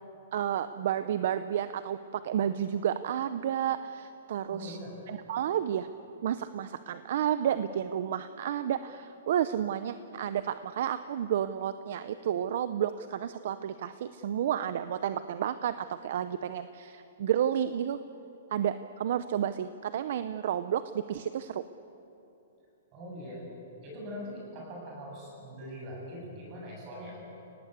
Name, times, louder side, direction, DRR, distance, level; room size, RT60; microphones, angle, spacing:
voice 1, 0.3-4.8 5.1-5.9 6.2-18.0 18.5-21.6, right 10 dB, 50° right, 12 dB, 0.7 m, -31 dB
voice 2, 4.5-5.0 22.9-23.5 23.8-27.2, equal, 25° right, -1 dB, 7.8 m, -42 dB
29.5 x 18.5 x 8.3 m, 3.0 s
hypercardioid pair, 175°, 0 cm